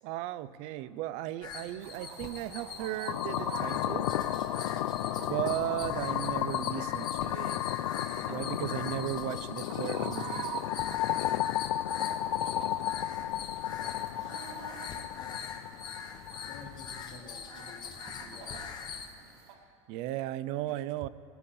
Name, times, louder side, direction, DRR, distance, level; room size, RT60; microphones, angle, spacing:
voice 1, 0.0-4.1 5.2-7.7 8.3-10.5 19.9-21.1, right 14 dB, 45° right, 16 dB, 0.5 m, -36 dB
sound 1, 1.4-19.1, left 6 dB, 30° left, 1.1 m, -43 dB
Chicken rooster, 1.8-19.5, right 7 dB, 65° right, 1.9 m, -47 dB
sound 2, 3.1-17.1, left 13 dB, 90° left, 0.5 m, -33 dB
voice 2, 13.7-14.4 15.1-16.0 16.4-18.0 18.2-18.8, left 4 dB, 65° left, -7 dB, 2.9 m, -52 dB
18.0 x 16.5 x 4.3 m, 2.7 s
supercardioid pair, 145°, 15 cm